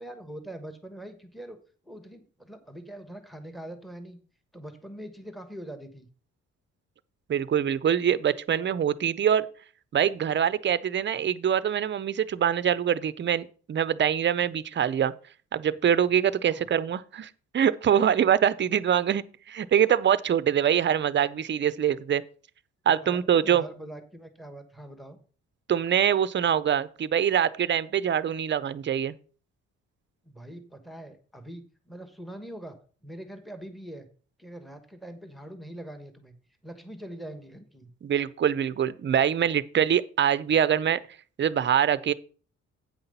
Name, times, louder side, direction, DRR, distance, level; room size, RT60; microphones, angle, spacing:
voice 1, 0.0-1.6 1.8-4.2 4.5-6.1 16.5-16.7 23.0-25.2 30.2-32.8 33.0-34.1 34.4-36.4 36.6-37.9, right 1 dB, ahead, 1.2 m, -43 dB
voice 2, 7.3-9.5 9.9-15.1 15.5-22.2 22.9-23.6 25.7-29.1 38.0-41.0 41.4-42.1, right 9 dB, 40° right, 0.6 m, -24 dB
8.8 x 5.7 x 5.4 m
cardioid pair, 90°, 30 cm